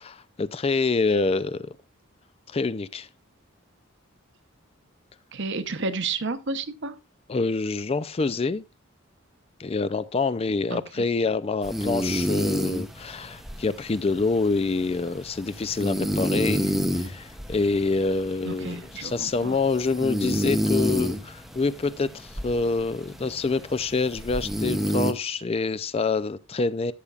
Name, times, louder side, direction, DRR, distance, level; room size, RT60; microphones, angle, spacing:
voice 1, 0.0-1.8 2.5-3.1 7.3-8.6 9.6-26.9, left 3 dB, 30° left, 0.4 m, -26 dB
voice 2, 5.3-6.9 10.7-11.1 18.4-19.6, right 3 dB, 55° right, 0.9 m, -31 dB
sound 1, 11.6-25.1, equal, ahead, 0.7 m, -30 dB
13.5 x 7.1 x 2.4 m
head